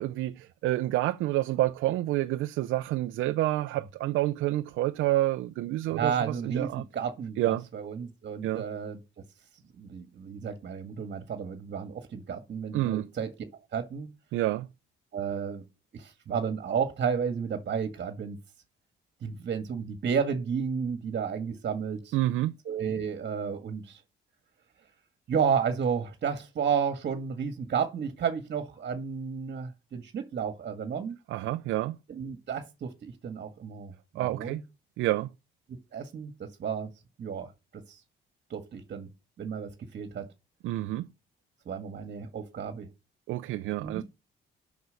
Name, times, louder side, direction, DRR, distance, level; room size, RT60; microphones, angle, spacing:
voice 1, 0.0-6.8 7.4-7.6 8.4-8.6 12.7-13.1 14.3-14.7 22.1-22.5 31.3-31.9 34.2-34.6 35.0-35.3 40.6-41.1 43.3-44.0, right 15 dB, 90° right, 0.6 m, -28 dB
voice 2, 5.9-9.0 9.8-13.3 13.7-14.1 15.1-15.6 15.9-18.4 19.2-22.2 22.7-24.0 25.3-31.2 32.1-34.6 35.9-36.9 37.2-38.0 38.5-39.1 39.4-40.3 41.7-42.9 43.8-44.0, right 7 dB, 55° right, 1.8 m, -32 dB
8.1 x 6.1 x 6.6 m
cardioid pair, 90°, 20 cm